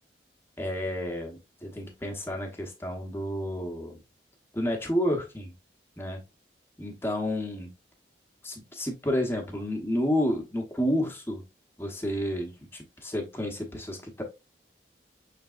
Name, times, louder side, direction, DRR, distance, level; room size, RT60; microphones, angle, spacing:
voice 1, 0.6-4.0 4.5-5.5 6.0-6.2 6.8-7.7 8.4-11.4 11.8-14.2, equal, 15° left, 1 dB, 0.9 m, -30 dB
5.9 x 3.4 x 2.4 m, 0.26 s
head